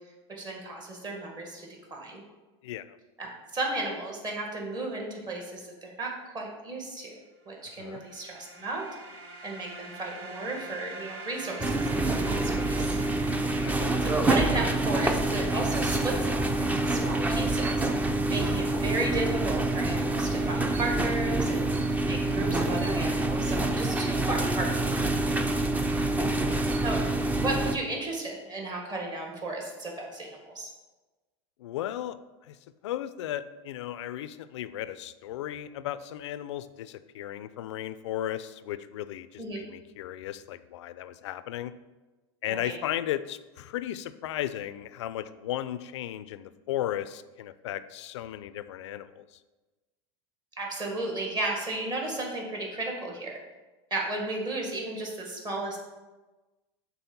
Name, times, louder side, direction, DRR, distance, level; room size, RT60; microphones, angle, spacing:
voice 1, 0.3-2.2 3.2-7.1 7.4-8.8 9.4-13.0 14.0-17.9 18.3-25.4 26.8-27.0 27.3-30.7 39.4-39.6 42.5-42.8 50.5-53.4 53.9-55.8, right 2 dB, 30° right, 0 dB, 1.7 m, -34 dB
voice 2, 2.6-3.0 7.8-8.0 13.6-14.0 18.5-18.7 26.1-26.6 27.0-27.1 31.6-32.6 32.8-41.7 42.4-49.4, left 12 dB, 90° left, 14 dB, 0.4 m, -35 dB
sound 1, 7.6-15.4, right 3 dB, 60° right, 1.2 m, -45 dB
sound 2, 11.6-27.8, right 2 dB, 10° right, 0.5 m, -27 dB
6.1 x 4.1 x 5.3 m, 1.2 s
supercardioid pair, 120°, 14 cm